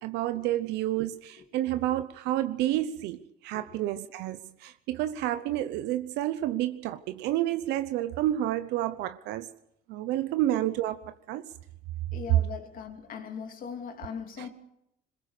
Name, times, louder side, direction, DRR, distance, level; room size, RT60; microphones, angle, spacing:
voice 1, 0.0-9.5 9.9-11.0 11.3-11.4 14.4-14.5, right 13 dB, 90° right, 0.9 m, -30 dB
voice 2, 12.1-14.5, left 7 dB, 55° left, 3.1 m, -40 dB
22.0 x 21.5 x 6.7 m
cardioid pair, 110°, 17 cm